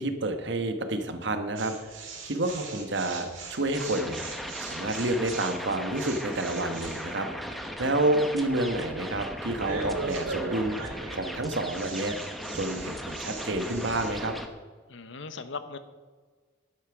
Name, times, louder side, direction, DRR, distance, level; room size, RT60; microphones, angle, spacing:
voice 1, 0.0-10.8 11.1-12.2 12.5-14.3, right 2 dB, 60° right, 8 dB, 1.2 m, -29 dB
sound 1, 1.6-14.1, right 3 dB, 85° right, 3.8 m, -40 dB
sound 2, 3.7-14.5, equal, ahead, 0.9 m, -38 dB
voice 2, 14.9-15.8, left 4 dB, 65° left, 11 dB, 0.9 m, -38 dB
11.5 x 8.8 x 6.0 m, 1.5 s
head